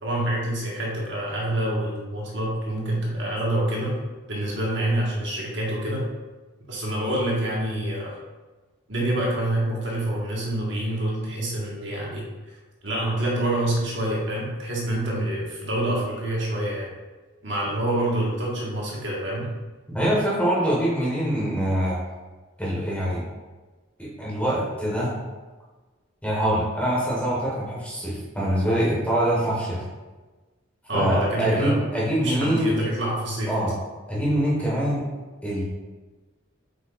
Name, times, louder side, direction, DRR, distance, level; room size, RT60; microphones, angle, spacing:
voice 1, 0.0-4.0 4.3-6.0 6.7-8.2 8.9-12.6 12.8-16.9 17.4-19.5 30.9-31.8 32.2-33.7, right 1 dB, 60° right, -4 dB, 1.5 m, -27 dB
voice 2, 19.9-22.0 22.6-23.2 24.0-25.1 26.2-29.8 30.9-32.8 33.5-33.8 34.1-35.0 35.4-35.6, equal, 5° left, -6 dB, 1.4 m, -24 dB
7.7 x 5.2 x 2.5 m, 1.3 s
head